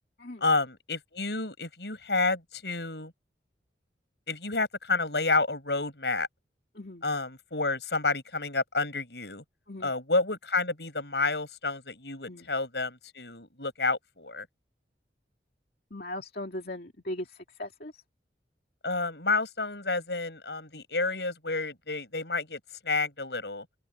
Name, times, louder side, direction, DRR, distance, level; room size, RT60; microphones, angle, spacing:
voice 1, 0.4-3.1 4.3-6.3 7.0-9.4 9.8-14.5 18.8-23.6, left 3 dB, 75° left, 7.5 m, -30 dB
voice 2, 6.7-7.1 9.7-9.9 12.3-12.5 15.9-18.0, left 1 dB, 60° left, 2.7 m, -39 dB
open air
head